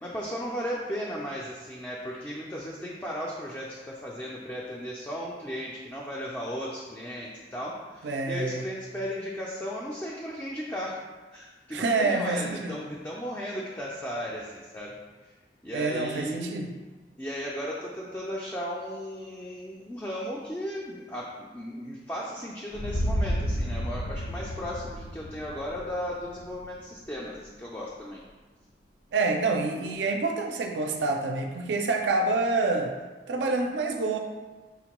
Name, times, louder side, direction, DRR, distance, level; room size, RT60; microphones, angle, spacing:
voice 1, 0.0-11.0 11.3-15.0 15.2-15.3 15.6-16.5 17.2-28.2, equal, 10° left, -4 dB, 0.3 m, -36 dB
voice 2, 8.0-8.7 11.7-12.8 15.7-16.7 29.1-33.0 33.3-34.2, right 3 dB, 75° right, 4 dB, 0.4 m, -27 dB
sound 1, 22.7-26.8, equal, 65° left, 0.5 m, -31 dB
5.7 x 2.2 x 2.9 m, 1.3 s
head